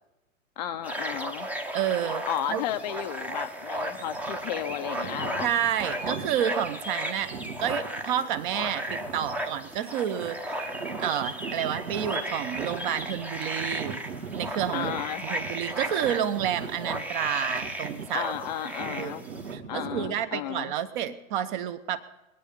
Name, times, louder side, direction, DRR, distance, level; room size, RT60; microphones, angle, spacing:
voice 1, 0.6-1.5 2.2-5.5 14.7-15.3 18.1-19.3 19.7-20.7, left 10 dB, 35° left, 10 dB, 0.6 m, -33 dB
sound 1, 0.8-19.5, right 1 dB, 5° right, 0.7 m, -35 dB
sound 2, 1.0-1.7 2.3-20.3, right 5 dB, 70° right, 2.0 m, -41 dB
voice 2, 1.7-2.2 2.5-2.6 5.4-10.7 11.0-14.0 14.3-18.3 19.0-22.0, right 10 dB, 40° right, 11 dB, 0.9 m, -30 dB
22.5 x 9.1 x 5.4 m, 0.99 s
figure-of-eight pair, 115°, 39 cm